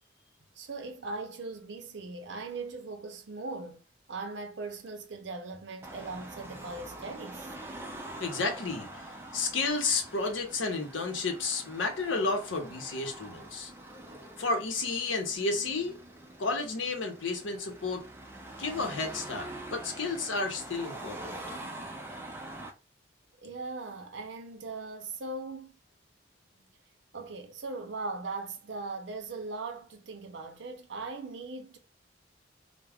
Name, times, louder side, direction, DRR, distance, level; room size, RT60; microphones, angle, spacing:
voice 1, 0.6-3.8 4.1-7.5 23.4-25.8 27.1-31.8, right 3 dB, 65° right, 0.6 m, -39 dB
Car passing by / Traffic noise roadway noise / Engine, 5.8-22.7, right 1 dB, 10° right, 0.3 m, -45 dB
voice 2, 8.2-8.9 9.3-13.7 14.4-15.9 16.4-18.0 18.6-21.4, left 3 dB, 85° left, 0.7 m, -31 dB
2.3 x 2.1 x 3.3 m
head